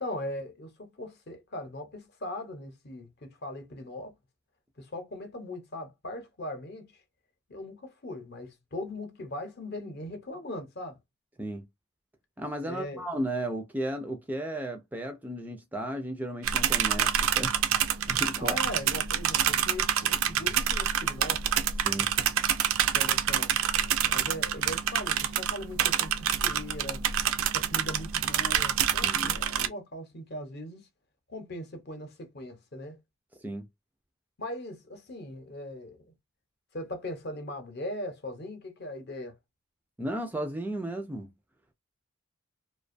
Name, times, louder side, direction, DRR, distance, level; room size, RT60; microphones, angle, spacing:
voice 1, 0.0-4.1 4.8-6.9 7.5-11.0 12.6-13.1 18.4-21.4 22.8-23.5 24.1-27.0 27.5-30.8 31.3-33.0 34.4-36.1 36.7-39.4, left 1 dB, 50° left, 0.7 m, -39 dB
voice 2, 12.4-17.6 18.1-18.6 21.8-22.1 29.0-29.4 33.4-33.7 40.0-41.3, right 1 dB, 10° right, 0.3 m, -34 dB
sound 1, 16.4-29.7, right 9 dB, 80° right, 0.4 m, -27 dB
2.4 x 2.2 x 2.5 m
head